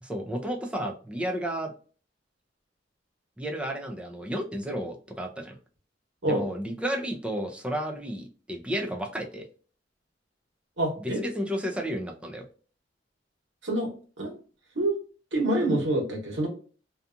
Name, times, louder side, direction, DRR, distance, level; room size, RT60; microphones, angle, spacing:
voice 1, 0.0-1.7 3.4-5.5 6.3-9.4 11.0-12.4, equal, 5° right, 1 dB, 0.5 m, -32 dB
voice 2, 10.8-11.2 13.6-13.9 14.2-14.3 14.7-15.0 15.3-16.5, right 1 dB, 85° right, 0 dB, 1.2 m, -26 dB
2.7 x 2.3 x 2.5 m, 0.39 s
head